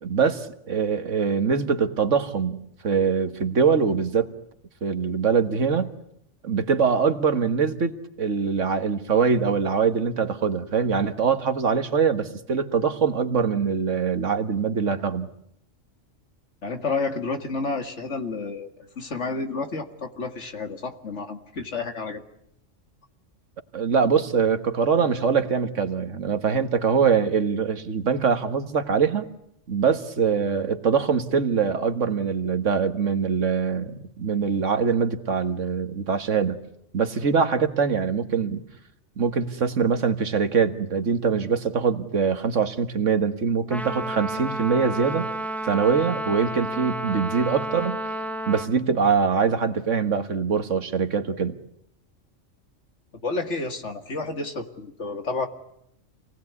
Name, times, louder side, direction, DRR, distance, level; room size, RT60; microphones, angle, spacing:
voice 1, 0.0-4.3 4.8-5.9 6.4-15.3 23.7-29.3 29.7-36.6 36.9-38.6 39.2-45.3 45.6-48.0 48.5-51.6, right 6 dB, 75° right, 10 dB, 1.8 m, -23 dB
voice 2, 16.6-18.7 19.0-22.2 53.2-55.5, left 3 dB, 65° left, 7 dB, 2.4 m, -30 dB
Trumpet, 43.7-48.7, right 1 dB, ahead, 1.1 m, -31 dB
27.5 x 19.0 x 9.6 m, 0.75 s
omnidirectional pair, 1.3 m